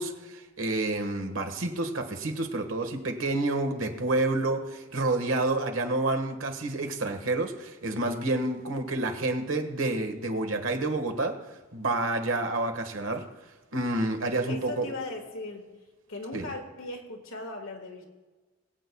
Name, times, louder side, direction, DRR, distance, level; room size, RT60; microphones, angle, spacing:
voice 1, 0.0-11.4 11.7-13.3 13.7-14.9 16.3-16.5, right 2 dB, 80° right, 5 dB, 1.4 m, -29 dB
voice 2, 14.5-15.7 16.1-18.1, left 2 dB, 85° left, 2 dB, 1.7 m, -38 dB
22.5 x 8.5 x 2.3 m, 1.2 s
head